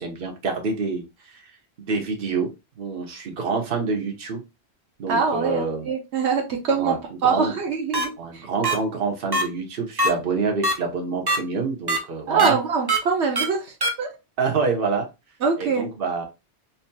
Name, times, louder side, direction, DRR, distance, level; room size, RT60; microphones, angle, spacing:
voice 1, 0.0-1.4 1.9-2.5 2.8-4.4 5.0-5.9 6.8-7.0 7.2-7.5 8.2-12.6 14.4-15.1 15.6-16.2, right 4 dB, 55° right, 3 dB, 1.1 m, -27 dB
voice 2, 5.1-6.9 7.2-8.5 12.3-14.1 15.4-15.9, right 5 dB, 80° right, 2 dB, 1.1 m, -24 dB
sound 1, 7.9-8.0 8.6-8.7 9.3-9.4 10.0-10.1 10.6-10.7 11.3-11.4 11.9-12.0 12.4-12.5 12.9-13.0 13.4-13.5 13.8-13.9, right 1 dB, 30° right, 0.5 m, -21 dB
4.7 x 2.8 x 2.2 m, 0.25 s
omnidirectional pair, 1.1 m